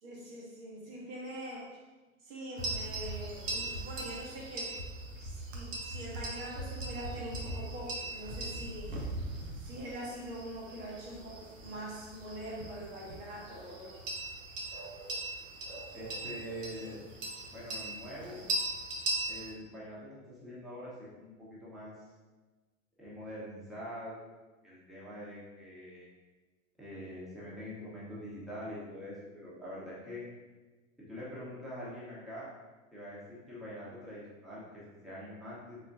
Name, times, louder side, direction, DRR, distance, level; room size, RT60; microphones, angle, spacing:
voice 1, 0.0-1.7 2.2-4.7 5.2-8.9 9.6-14.0, equal, 40° right, -4 dB, 1.2 m, -43 dB
sound 1, 2.6-19.5, right 1 dB, 65° right, 1.0 m, -39 dB
voice 2, 15.9-17.0 17.5-18.4 19.3-21.9 23.0-24.2 24.6-26.1 26.8-30.2 31.0-32.5 32.9-35.8, equal, ahead, -9 dB, 1.2 m, -44 dB
4.1 x 4.0 x 2.7 m, 1.2 s
figure-of-eight pair, 95°, 41 cm